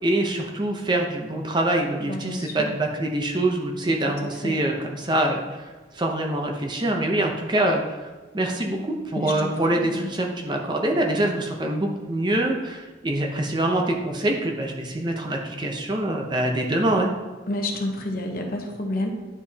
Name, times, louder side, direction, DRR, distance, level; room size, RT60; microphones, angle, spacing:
voice 1, 0.0-5.4 5.9-7.8 8.3-17.1, right 1 dB, 25° right, 1 dB, 0.7 m, -24 dB
voice 2, 2.1-2.7 4.2-4.5 9.1-10.1 17.5-19.1, left 1 dB, 50° left, 2 dB, 0.9 m, -30 dB
10.0 x 5.0 x 2.8 m, 1.3 s
head